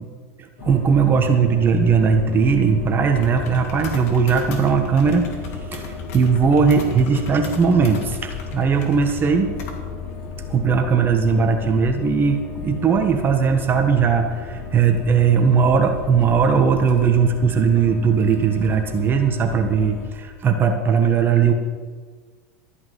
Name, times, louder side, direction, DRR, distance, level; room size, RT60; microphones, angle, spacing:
voice 1, 0.4-5.3 5.7-9.5 10.5-21.5, right 6 dB, 25° right, 5 dB, 1.3 m, -18 dB
sound 1, 0.6-20.1, left 5 dB, 65° left, 2.6 m, -34 dB
13.5 x 5.9 x 9.4 m, 1.5 s
supercardioid pair, 130°, 8 cm